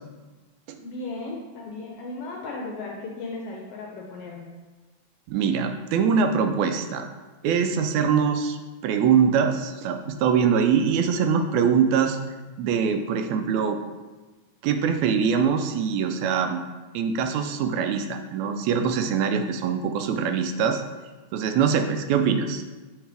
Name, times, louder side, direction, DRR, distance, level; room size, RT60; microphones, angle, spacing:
voice 1, 0.8-4.5, left 3 dB, 75° left, -1 dB, 1.4 m, -36 dB
voice 2, 5.3-7.1 7.4-8.6 8.8-12.2 12.6-13.8 14.6-16.6 16.9-20.8 21.3-22.6, right 6 dB, 80° right, 6 dB, 1.9 m, -23 dB
7.9 x 4.0 x 3.3 m, 1.2 s
omnidirectional pair, 3.4 m